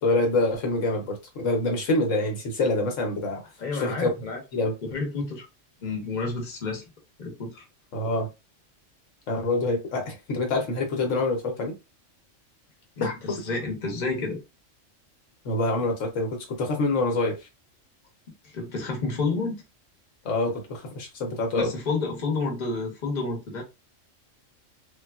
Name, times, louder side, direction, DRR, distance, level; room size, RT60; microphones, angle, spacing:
voice 1, 0.0-3.4 3.7-4.1 4.5-4.7 7.9-8.3 9.3-11.7 13.0-13.1 15.4-17.4 20.2-21.7, left 2 dB, 75° left, 1.1 m, -26 dB
voice 2, 3.6-4.4 4.8-5.4 5.8-6.8 7.2-7.6 13.0-14.4 18.5-19.6 21.6-23.6, left 3 dB, 40° left, 1.0 m, -30 dB
3.4 x 2.3 x 2.3 m
omnidirectional pair, 1.3 m